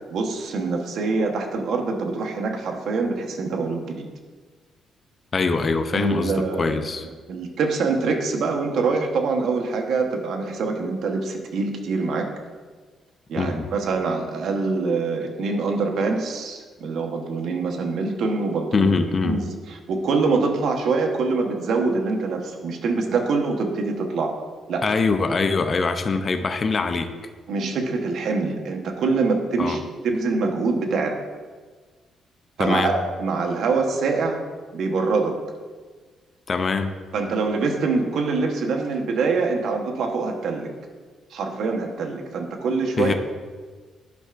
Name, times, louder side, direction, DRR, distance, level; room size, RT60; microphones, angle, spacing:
voice 1, 0.1-4.0 5.9-6.8 7.3-12.3 13.3-18.9 19.2-19.5 19.9-24.3 24.7-24.8 27.5-31.2 32.6-34.4 34.7-35.4 37.1-40.7 41.3-43.1, right 4 dB, 70° right, 2 dB, 1.0 m, -24 dB
voice 2, 5.3-7.1 13.4-13.7 18.7-19.4 24.8-27.1 29.6-29.8 32.6-32.9 36.5-37.0 43.0-43.1, left 4 dB, 40° left, 7 dB, 0.6 m, -23 dB
10.5 x 5.6 x 2.5 m, 1.4 s
cardioid pair, 90°, 0 cm